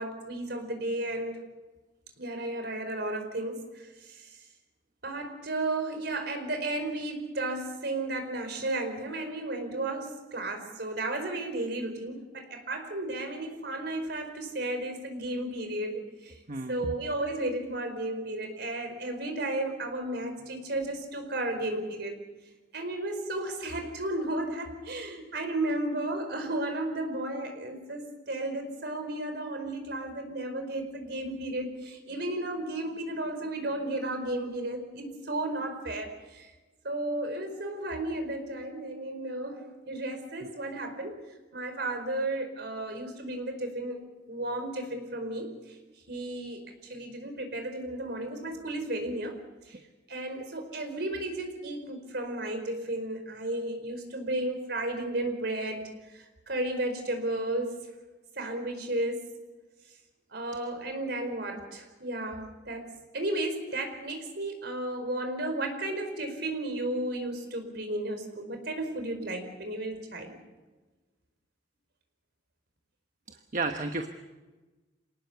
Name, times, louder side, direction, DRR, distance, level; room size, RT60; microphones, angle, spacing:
voice 1, 0.0-1.3 2.2-4.3 5.0-16.3 16.7-22.2 22.7-36.5 36.8-39.6 39.9-41.2 41.5-44.0 44.3-45.5 46.1-46.6 46.9-49.3 49.7-49.8 50.1-55.8 56.1-57.8 58.4-59.3 60.3-62.9 63.1-70.3, right 1 dB, 60° right, 6 dB, 4.8 m, -33 dB
voice 2, 16.5-16.9 73.3-74.1, right 3 dB, 45° right, 5 dB, 1.2 m, -32 dB
27.0 x 19.0 x 7.0 m, 1.2 s
head